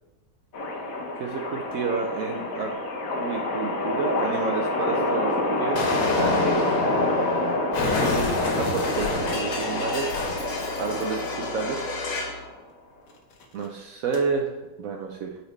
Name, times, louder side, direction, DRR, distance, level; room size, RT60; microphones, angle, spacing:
sound 1, 0.5-12.7 13.4-13.7 14.1-14.2, left 2 dB, 50° left, 1.2 m, -28 dB
voice 1, 1.2-2.7 3.2-6.7 7.8-10.3 10.8-11.9 13.5-14.5 14.8-15.4, right 4 dB, 85° right, 1 dB, 0.7 m, -30 dB
Explosion, 5.7-12.4, left 3 dB, 90° left, 2.2 m, -29 dB
8.5 x 4.4 x 3.2 m, 1.1 s
omnidirectional pair, 2.2 m